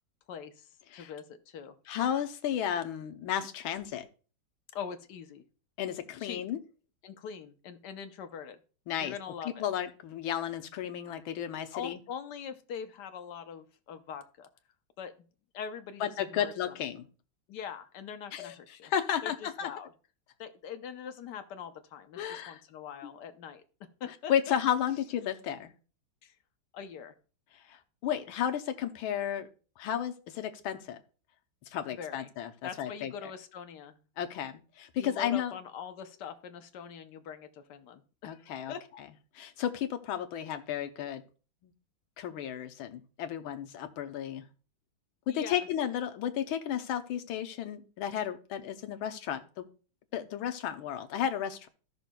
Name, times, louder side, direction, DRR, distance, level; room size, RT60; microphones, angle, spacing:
voice 1, 0.3-1.7 4.7-5.4 6.2-6.4 7.0-8.6 9.0-9.6 11.7-14.5 15.0-15.1 15.5-16.7 17.5-18.9 19.2-19.9 20.4-23.6 24.0-24.3 26.2-26.4 26.7-27.1 32.0-32.3 32.6-34.0 35.0-38.8 45.3-45.7, left 7 dB, 65° left, 8 dB, 1.2 m, -43 dB
voice 2, 1.9-4.1 5.8-6.6 8.9-9.1 9.4-12.0 16.0-17.1 18.3-18.5 18.8-19.7 22.2-22.6 24.3-25.7 27.7-29.5 29.8-31.0 31.7-32.5 32.8-33.3 34.2-35.5 38.2-39.1 39.3-41.2 41.6-41.7 42.2-44.5 45.3-49.6 50.1-51.7, left 9 dB, 85° left, 8 dB, 1.6 m, -33 dB
14.5 x 6.1 x 2.2 m, 0.37 s
omnidirectional pair, 2.2 m